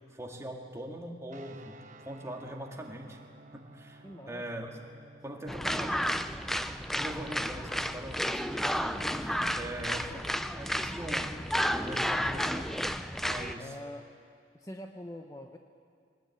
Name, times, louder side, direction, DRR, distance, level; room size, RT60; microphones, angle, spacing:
voice 1, 0.1-1.8 2.0-3.2 3.5-4.8 5.2-6.0 6.9-11.4 11.7-12.8 13.2-13.7, right 1 dB, 15° right, 1 dB, 2.2 m, -42 dB
sound 1, 1.3-11.6, right 2 dB, 45° right, 1.0 m, -57 dB
voice 2, 4.0-4.7 5.3-6.4 12.1-12.5 13.5-14.1 14.5-15.6, left 1 dB, 20° left, 4 dB, 0.9 m, -46 dB
sound 2, 5.5-13.5, equal, ahead, 0.5 m, -32 dB
22.5 x 19.5 x 9.5 m, 2.3 s
head